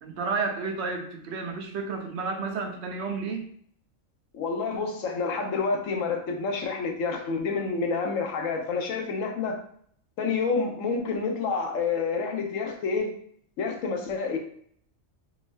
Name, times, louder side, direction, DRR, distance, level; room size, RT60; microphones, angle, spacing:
voice 1, 0.0-3.5, right 4 dB, 65° right, 5 dB, 0.8 m, -31 dB
voice 2, 4.3-9.6 10.2-13.1 13.6-14.4, left 4 dB, 80° left, 3 dB, 1.1 m, -28 dB
3.5 x 3.1 x 3.3 m, 0.63 s
omnidirectional pair, 1.3 m